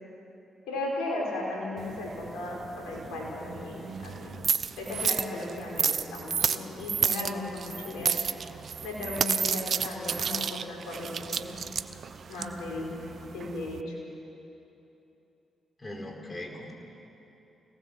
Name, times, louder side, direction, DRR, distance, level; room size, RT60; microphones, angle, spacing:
voice 1, 0.7-4.5 4.8-8.1 8.8-11.5 12.3-12.9 13.3-14.0, left 2 dB, 85° left, -1 dB, 4.9 m, -36 dB
sound 1, 1.8-13.8, right 7 dB, 60° right, 0.8 m, -32 dB
voice 2, 15.8-16.7, left 1 dB, 30° left, 2 dB, 4.6 m, -39 dB
25.5 x 18.5 x 7.6 m, 3.0 s
hypercardioid pair, 45°, 0 cm